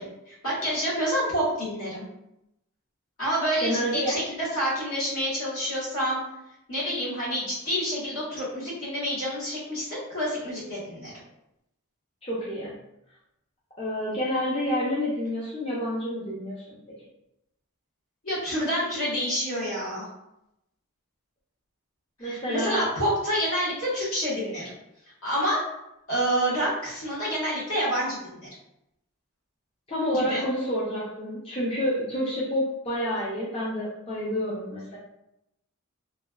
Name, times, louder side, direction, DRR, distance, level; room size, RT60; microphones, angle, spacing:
voice 1, 0.0-2.1 3.2-6.2 6.7-11.1 18.2-20.1 22.2-24.6 25.2-25.6 26.1-28.5 30.1-30.4, equal, 70° left, -7 dB, 1.4 m, -28 dB
voice 2, 3.6-4.2 12.2-12.7 13.8-16.8 22.2-22.9 29.9-35.0, equal, 25° left, -7 dB, 0.5 m, -29 dB
3.1 x 2.2 x 2.2 m, 0.84 s
head